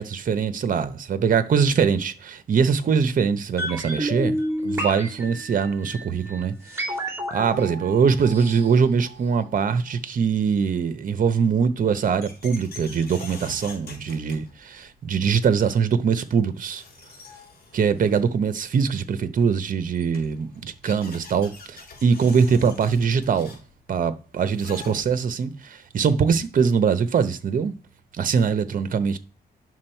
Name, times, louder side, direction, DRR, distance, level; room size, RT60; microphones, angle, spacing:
voice 1, 0.0-6.9 7.3-16.8 17.7-23.6 23.9-27.7 28.1-29.2, right 6 dB, 55° right, 0.8 m, -22 dB
sound 1, 3.6-9.6 9.9-10.0, equal, 15° right, 2.7 m, -31 dB
sound 2, 11.7-14.9 16.2-16.3 16.6-18.4 19.6-19.7 19.9-25.4, left 4 dB, 60° left, 3.3 m, -45 dB
9.5 x 6.2 x 4.4 m
wide cardioid pair, 125°, 17 cm